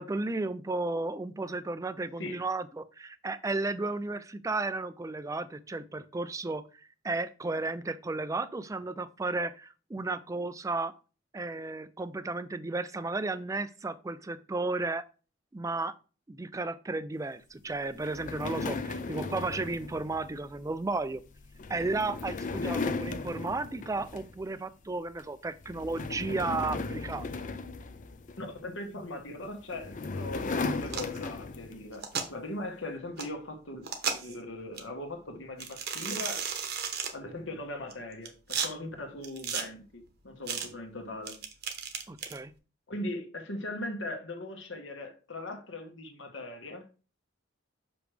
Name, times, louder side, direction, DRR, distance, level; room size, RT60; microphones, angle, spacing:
voice 1, 0.0-6.7 7.0-10.9 11.3-15.0 15.5-15.9 16.3-21.2 21.7-27.3 42.1-42.5, right 3 dB, 15° right, 0.3 m, -33 dB
sound 1, 18.0-24.5 24.9-25.2 25.6-28.6 29.4-31.9, left 3 dB, 40° left, 0.5 m, -36 dB
voice 2, 28.4-36.5 37.1-41.4 42.9-46.8, left 1 dB, 65° left, 1.3 m, -40 dB
sound 2, 30.9-31.2 31.9-32.3 33.2-33.3 33.8-34.3 34.8-34.9 35.6-37.1 37.9-38.7 39.2-39.6 40.5-40.7 41.3-42.4, right 7 dB, 55° right, 1.0 m, -34 dB
6.2 x 5.0 x 3.3 m
head